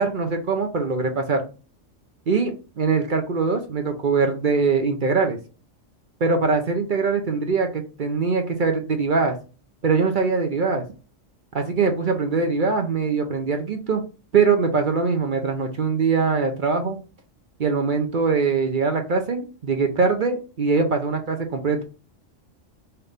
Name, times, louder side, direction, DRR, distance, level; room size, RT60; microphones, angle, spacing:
voice 1, 0.0-1.4 2.3-5.4 6.2-9.4 9.8-10.8 11.5-14.0 14.3-17.0 17.6-21.8, right 4 dB, 50° right, 5 dB, 0.8 m, -22 dB
5.7 x 2.7 x 3.4 m, 0.33 s
omnidirectional pair, 1.3 m